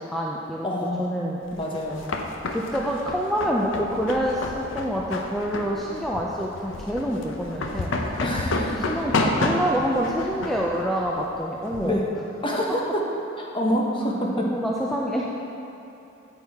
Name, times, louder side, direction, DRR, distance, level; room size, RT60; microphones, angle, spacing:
voice 1, 0.0-0.7 1.0-1.4 2.5-8.1 8.8-12.0 14.4-15.5, equal, ahead, -4 dB, 0.5 m, -27 dB
voice 2, 0.6-1.1 1.5-2.1 8.2-8.9 11.8-12.1 12.4-13.0 13.4-14.5, equal, 25° left, -2 dB, 1.0 m, -26 dB
sound 1, 1.5-11.9, left 2 dB, 70° left, 0.7 m, -30 dB
8.7 x 8.2 x 3.5 m, 2.9 s
head